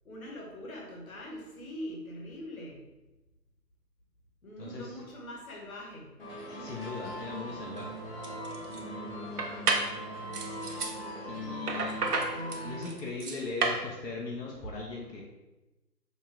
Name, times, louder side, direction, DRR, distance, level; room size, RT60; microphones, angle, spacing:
voice 1, 0.0-2.8 4.4-6.1, equal, 60° left, -2 dB, 1.3 m, -42 dB
voice 2, 4.6-4.9 6.6-8.0 11.3-12.2 12.6-15.2, left 3 dB, 85° left, -2 dB, 1.0 m, -38 dB
sound 1, 6.2-12.9, equal, 40° left, 1.2 m, -40 dB
sound 2, 7.7-7.8 8.2-8.8 9.4-9.9 10.3-11.0 11.7-13.8, right 3 dB, 65° right, 0.7 m, -31 dB
5.4 x 2.2 x 3.6 m, 1.1 s
figure-of-eight pair, 155°, 49 cm